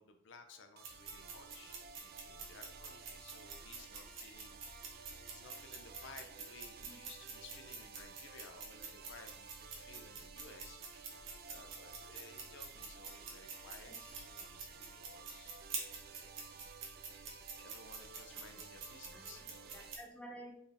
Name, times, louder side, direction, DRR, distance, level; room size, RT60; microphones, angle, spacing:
voice 1, 0.0-15.6 16.1-16.6 17.0-17.1 17.6-19.7, left 4 dB, 60° left, 6 dB, 0.5 m, -58 dB
sound 1, 0.8-20.0, right 6 dB, 50° right, 0.4 m, -55 dB
sound 2, 0.8-20.0, right 4 dB, 70° right, 1.1 m, -49 dB
voice 2, 13.8-14.2 18.3-18.7 19.1-20.5, right 1 dB, 5° left, 0 dB, 0.7 m, -54 dB
4.3 x 3.3 x 3.4 m, 0.77 s
head